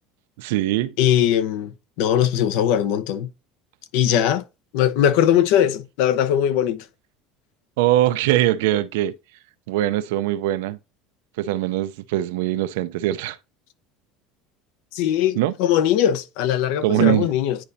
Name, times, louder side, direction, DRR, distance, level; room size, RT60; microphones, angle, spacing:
voice 1, 0.4-0.9 7.8-9.1 9.7-10.8 11.4-13.4 15.4-15.5 16.8-17.3, right 14 dB, 90° right, 0.5 m, -21 dB
voice 2, 1.0-3.3 3.9-4.4 4.7-6.8 14.9-17.6, left 10 dB, 70° left, 0.8 m, -20 dB
10.0 x 4.1 x 2.7 m
cardioid pair, 140°, 0 cm